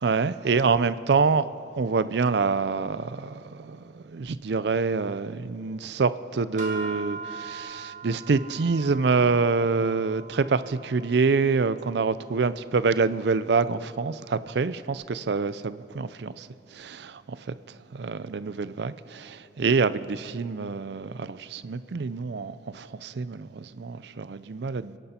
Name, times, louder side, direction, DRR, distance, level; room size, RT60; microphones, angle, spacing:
voice 1, 0.0-1.5 1.7-17.5 17.9-25.0, right 4 dB, 65° right, 0.5 m, -26 dB
sound 1, 6.6-12.9, right 3 dB, 45° right, 1.5 m, -41 dB
28.5 x 11.0 x 4.4 m
head